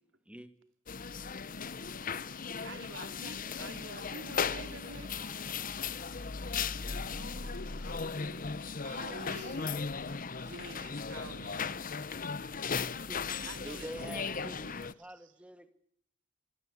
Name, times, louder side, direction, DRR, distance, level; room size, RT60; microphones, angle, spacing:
sound 1, 0.9-14.9, left 5 dB, 45° left, 1.0 m, -37 dB
sound 2, 2.4-12.4, right 2 dB, 35° right, 4.8 m, -67 dB
voice 1, 2.6-5.3 7.3-7.5 8.8-9.8 10.4-11.7 13.4-15.3, right 3 dB, 75° right, 2.8 m, -48 dB
voice 2, 7.0-8.5 9.0-9.8, left 1 dB, 65° left, 5.3 m, -48 dB
voice 3, 13.1-15.7, right 1 dB, 5° right, 2.3 m, -47 dB
27.0 x 21.0 x 8.5 m
head